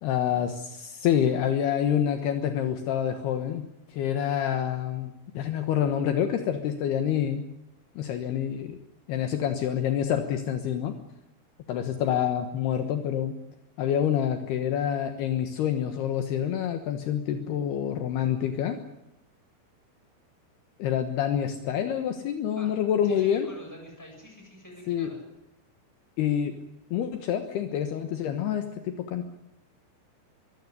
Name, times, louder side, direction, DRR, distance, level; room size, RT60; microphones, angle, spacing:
voice 1, 0.0-7.4 8.0-8.8 9.1-11.0 11.7-13.4 13.8-18.8 20.8-23.5 24.9-25.1 26.2-26.6 26.9-29.3, left 9 dB, 70° left, 7 dB, 3.2 m, -27 dB
voice 2, 23.0-25.2, equal, 5° left, 2 dB, 7.0 m, -46 dB
23.0 x 16.5 x 9.8 m, 0.86 s
omnidirectional pair, 5.0 m